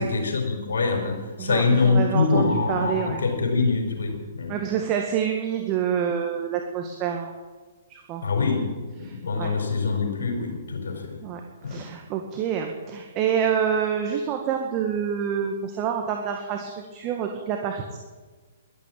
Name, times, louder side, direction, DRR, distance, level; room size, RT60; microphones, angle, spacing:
voice 1, 0.0-4.6 8.2-11.2 11.6-11.8, left 4 dB, 70° left, 3 dB, 4.9 m, -24 dB
voice 2, 1.4-3.2 4.5-7.4 7.9-8.2 9.0-9.5 11.2-11.4 11.7-18.0, right 8 dB, 30° right, 3 dB, 1.9 m, -27 dB
12.5 x 12.0 x 8.8 m, 1.3 s
figure-of-eight pair, 125°, 0 cm